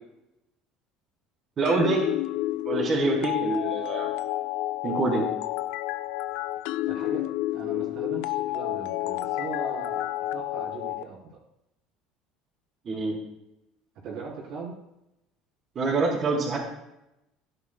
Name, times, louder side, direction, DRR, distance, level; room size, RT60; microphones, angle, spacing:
voice 1, 1.6-2.0 2.7-4.1 4.8-5.3 12.9-13.2 15.8-16.6, right 3 dB, 35° right, -5 dB, 3.6 m, -25 dB
sound 1, 1.7-11.0, left 15 dB, 80° left, 0.4 m, -30 dB
voice 2, 6.9-7.2 7.5-11.4 14.0-14.7, right 4 dB, 60° right, -4 dB, 3.9 m, -39 dB
16.0 x 11.0 x 2.3 m, 0.88 s
cardioid pair, 140°, 0 cm